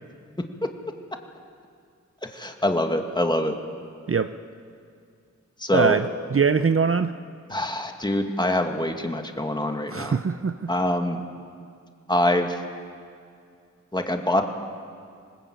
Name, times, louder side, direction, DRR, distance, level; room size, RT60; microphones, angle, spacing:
voice 1, 2.2-3.6 5.6-6.0 7.5-10.2 10.7-11.2 12.1-12.6 13.9-14.5, left 1 dB, 15° left, 4 dB, 2.1 m, -24 dB
voice 2, 5.7-6.1 6.3-7.2 9.9-10.7, right 5 dB, 50° right, 10 dB, 0.7 m, -22 dB
21.5 x 19.0 x 8.9 m, 2.3 s
cardioid pair, 45°, 30 cm